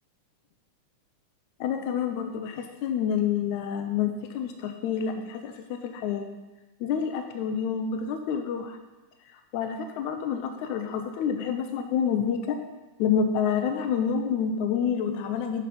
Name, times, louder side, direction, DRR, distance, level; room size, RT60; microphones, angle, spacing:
voice 1, 1.6-6.3 6.8-8.8 9.3-12.6 13.0-15.7, left 7 dB, 85° left, 6 dB, 2.0 m, -28 dB
7.6 x 6.7 x 5.1 m, 1.1 s
omnidirectional pair, 3.4 m